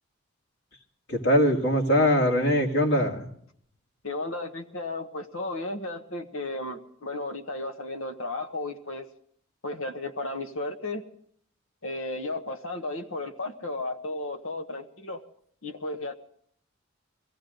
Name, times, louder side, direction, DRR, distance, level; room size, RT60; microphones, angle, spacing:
voice 1, 1.1-3.3, equal, 55° left, 2 dB, 2.4 m, -22 dB
voice 2, 4.0-9.1 9.6-11.0 11.8-15.2 15.6-16.2, left 2 dB, 80° left, 8 dB, 1.4 m, -34 dB
21.5 x 15.5 x 3.9 m, 0.64 s
head